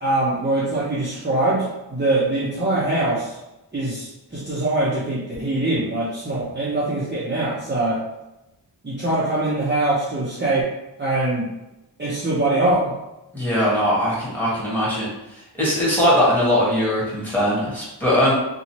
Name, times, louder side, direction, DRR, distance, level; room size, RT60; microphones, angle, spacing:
voice 1, 0.0-3.4 3.7-8.0 8.8-10.7 11.0-11.5 12.0-12.9, right 2 dB, 25° right, -9 dB, 0.7 m, -23 dB
voice 2, 13.3-15.1 15.5-18.3, equal, 5° left, -7 dB, 1.3 m, -20 dB
3.0 x 2.3 x 2.8 m, 0.95 s
wide cardioid pair, 90°, 43 cm